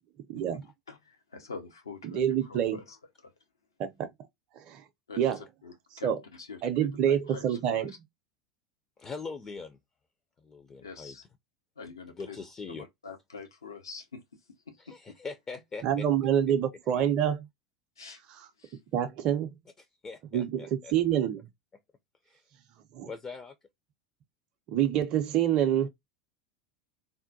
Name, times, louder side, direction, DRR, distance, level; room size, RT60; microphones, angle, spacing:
voice 1, 0.3-0.6 2.0-2.8 3.8-4.1 4.6-4.8 5.2-5.4 6.0-6.2 6.6-7.9 15.8-17.5 18.9-19.5 20.3-21.4 22.9-23.1 24.7-25.9, right 10 dB, 45° right, 0.4 m, -27 dB
voice 2, 0.9-3.0 3.2-3.3 5.1-8.0 10.8-11.2 11.8-12.4 12.7-14.2 14.7-15.2 18.0-18.2 18.6-18.8, left 4 dB, 80° left, 0.6 m, -45 dB
voice 3, 9.0-9.8 10.4-11.2 12.2-12.9 14.8-16.1 16.9-17.1 19.8-20.9 22.3-22.4 23.0-23.5, left 4 dB, 25° left, 0.4 m, -42 dB
3.6 x 2.1 x 2.6 m
figure-of-eight pair, 80°, 2 cm